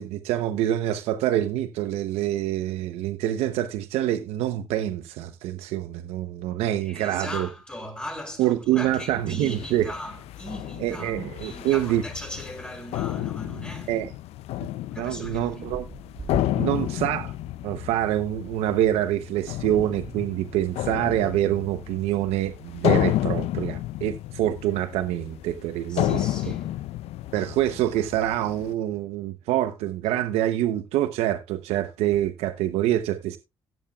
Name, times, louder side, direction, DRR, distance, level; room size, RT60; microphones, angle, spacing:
voice 1, 0.0-7.5 8.4-9.9 10.8-12.0 13.9-14.1 15.0-15.8 16.6-17.4 17.6-26.2 27.3-33.4, right 13 dB, 90° right, 0.8 m, -26 dB
voice 2, 6.8-14.0 14.9-15.6 25.9-26.7, left 1 dB, 10° left, 6.4 m, -38 dB
sound 1, 8.8-28.7, left 15 dB, 80° left, 0.4 m, -31 dB
sound 2, 14.1-14.2 14.7-20.3, right 3 dB, 25° right, 1.5 m, -42 dB
18.0 x 7.4 x 2.3 m
supercardioid pair, 70°, 10 cm